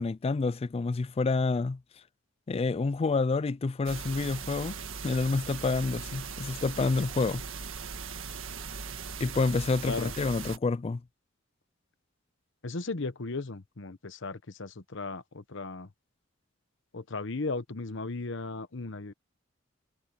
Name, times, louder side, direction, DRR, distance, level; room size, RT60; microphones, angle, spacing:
voice 1, 0.0-1.8 2.5-4.7 5.0-7.4 9.2-11.0, left 3 dB, 30° left, 0.4 m, -28 dB
sound 1, 3.9-10.6, right 5 dB, 85° right, 1.6 m, -39 dB
voice 2, 12.6-15.9 16.9-19.1, left 3 dB, 65° left, 1.1 m, -36 dB
head